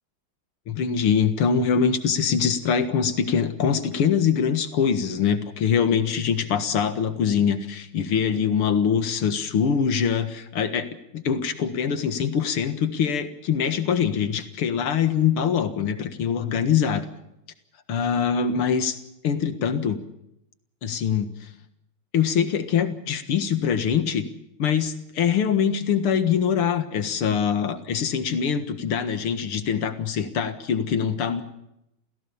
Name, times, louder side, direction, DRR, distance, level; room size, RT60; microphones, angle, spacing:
voice 1, 0.7-10.9 11.1-17.1 17.9-19.0 19.2-20.0 20.8-21.5 22.1-24.3 24.6-31.4, left 7 dB, 80° left, 10 dB, 2.5 m, -23 dB
27.0 x 16.5 x 7.1 m, 0.83 s
omnidirectional pair, 2.4 m